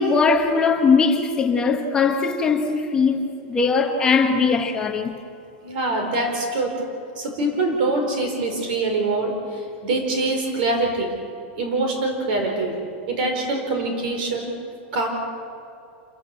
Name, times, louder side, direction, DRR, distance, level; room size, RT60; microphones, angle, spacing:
voice 1, 0.0-5.1, left 4 dB, 10° left, 1.2 m, -20 dB
voice 2, 5.6-6.8 7.2-11.1 11.6-12.7 13.1-14.5 14.9-15.1, right 2 dB, 45° right, 4.9 m, -24 dB
28.0 x 18.5 x 8.0 m
supercardioid pair, 180°, 7 cm